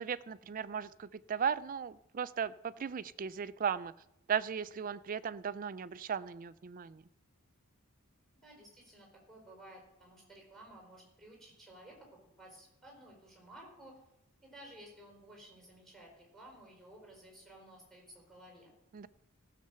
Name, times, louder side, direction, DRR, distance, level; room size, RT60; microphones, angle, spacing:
voice 1, 0.0-3.9 4.3-7.0 18.9-19.1, right 7 dB, 40° right, 15 dB, 0.3 m, -36 dB
voice 2, 8.4-14.0 14.4-18.7, right 1 dB, ahead, 0 dB, 4.7 m, -55 dB
14.5 x 6.7 x 6.8 m, 0.85 s
head